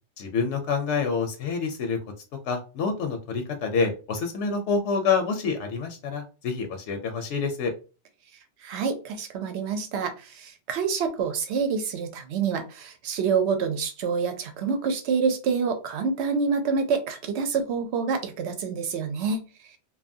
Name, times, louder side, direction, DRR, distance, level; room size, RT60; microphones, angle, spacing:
voice 1, 0.2-2.0 2.4-7.7, left 5 dB, 80° left, 5 dB, 0.9 m, -27 dB
voice 2, 8.6-19.4, right 5 dB, 75° right, 7 dB, 0.9 m, -27 dB
2.7 x 2.3 x 2.6 m, 0.32 s
omnidirectional pair, 1.2 m